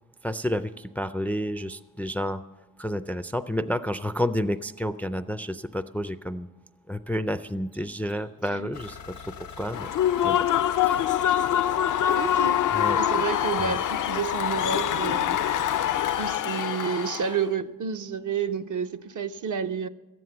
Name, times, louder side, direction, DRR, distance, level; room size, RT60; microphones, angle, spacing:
voice 1, 0.2-2.4 2.8-6.5 6.9-9.9 10.2-10.5 10.8-11.0 12.7-13.0 13.6-13.8, equal, 5° left, 0.3 m, -30 dB
Mechanisms, 4.5-4.6 7.6-13.2, equal, 90° right, 6.0 m, -60 dB
sound 1, 8.7-16.4, left 6 dB, 85° left, 1.0 m, -42 dB
Human voice / Cheering / Applause, 9.7-17.4, left 10 dB, 65° left, 0.5 m, -25 dB
voice 2, 12.1-12.6 13.0-15.4 16.2-19.9, right 7 dB, 60° right, 0.7 m, -30 dB
13.5 x 9.4 x 7.7 m
cardioid pair, 100°, 34 cm